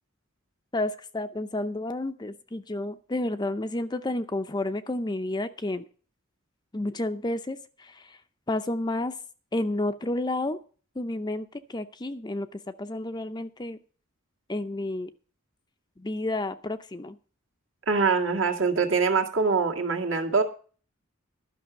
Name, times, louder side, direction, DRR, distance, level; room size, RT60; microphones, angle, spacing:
voice 1, 0.7-5.9 6.7-8.2 8.5-9.2 9.5-10.6 11.0-13.8 14.5-15.1 16.0-17.2, left 2 dB, 20° left, 11 dB, 0.6 m, -31 dB
voice 2, 17.9-20.4, right 4 dB, 65° right, 3 dB, 2.1 m, -24 dB
12.0 x 6.1 x 8.1 m, 0.40 s
head